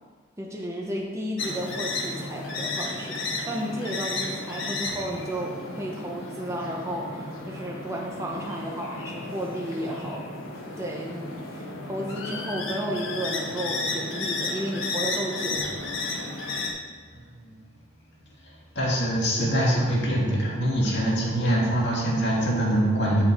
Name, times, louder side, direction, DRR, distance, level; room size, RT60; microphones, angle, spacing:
voice 1, 0.4-10.3 10.8-15.7, equal, 15° right, -1 dB, 0.7 m, -33 dB
sound 1, 1.4-16.7, left 2 dB, 75° left, 1.2 m, -33 dB
voice 2, 17.1-17.5 18.7-23.2, right 1 dB, 55° left, -5 dB, 2.2 m, -24 dB
8.7 x 5.7 x 4.3 m, 1.5 s
head